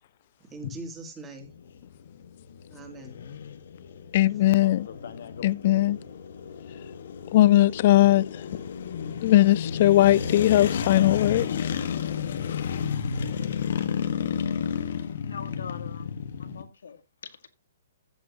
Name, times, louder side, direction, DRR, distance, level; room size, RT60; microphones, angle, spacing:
voice 1, 0.4-1.5 2.7-3.2 4.4-4.6 5.9-6.1, right 2 dB, 15° right, 2.8 m, -42 dB
sound 1, 1.4-16.6, left 7 dB, 60° left, 1.5 m, -32 dB
voice 2, 4.1-4.9 5.4-6.0 7.3-8.3 9.2-11.7, left 14 dB, 40° left, 0.5 m, -19 dB
voice 3, 15.2-17.0, left 6 dB, 80° left, 2.0 m, -42 dB
15.0 x 7.7 x 2.9 m
hypercardioid pair, 160°, 0 cm